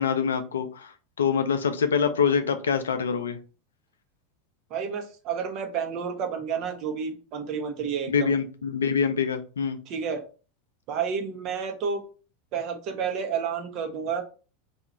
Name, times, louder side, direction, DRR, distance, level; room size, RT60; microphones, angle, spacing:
voice 1, 0.0-3.4 8.1-9.8, left 6 dB, 70° left, 0.4 m, -25 dB
voice 2, 4.7-8.3 9.9-10.2 10.9-12.0 12.5-14.2, right 6 dB, 45° right, 0.7 m, -30 dB
2.8 x 2.3 x 4.1 m
figure-of-eight pair, 80°, 0 cm